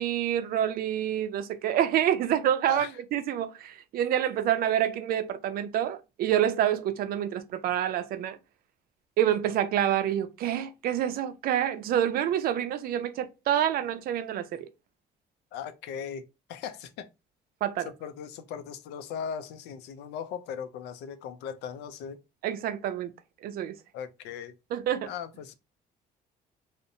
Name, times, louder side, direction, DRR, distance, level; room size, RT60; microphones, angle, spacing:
voice 1, 0.0-8.4 9.2-14.7 17.6-17.9 22.4-23.1 23.4-23.8 24.7-25.1, right 10 dB, 60° right, 0.4 m, -27 dB
voice 2, 15.5-17.1 17.8-22.2 23.9-24.6 25.0-25.5, left 7 dB, 85° left, 0.4 m, -38 dB
2.6 x 2.0 x 2.6 m
cardioid pair, 110°, 17 cm